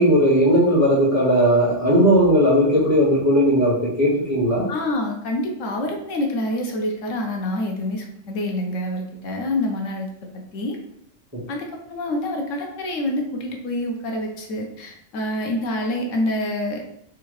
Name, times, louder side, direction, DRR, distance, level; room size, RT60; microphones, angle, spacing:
voice 1, 0.0-4.6, equal, 15° right, -8 dB, 1.6 m, -17 dB
voice 2, 4.7-10.1 10.5-10.8 11.5-16.9, left 1 dB, 85° left, 2 dB, 1.1 m, -26 dB
3.7 x 3.4 x 3.2 m, 0.75 s
omnidirectional pair, 1.3 m